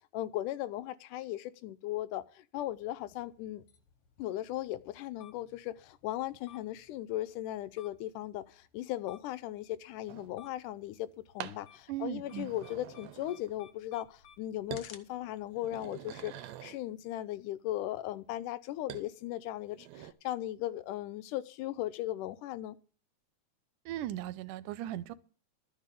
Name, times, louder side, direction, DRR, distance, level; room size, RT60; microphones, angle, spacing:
voice 1, 0.1-3.6 4.2-11.1 11.3-22.8, left 14 dB, 90° left, 2.3 m, -37 dB
sound 1, 2.6-16.5, left 8 dB, 60° left, 1.8 m, -60 dB
sound 2, 10.1-10.3 11.4-11.6 12.2-13.6 14.0-14.4 14.7-14.9 15.4-16.8 18.9-19.1 19.6-20.1, right 12 dB, 70° right, 1.8 m, -46 dB
voice 2, 11.9-12.5 23.9-25.1, right 13 dB, 90° right, 2.3 m, -38 dB
12.5 x 5.6 x 8.3 m
omnidirectional pair, 3.6 m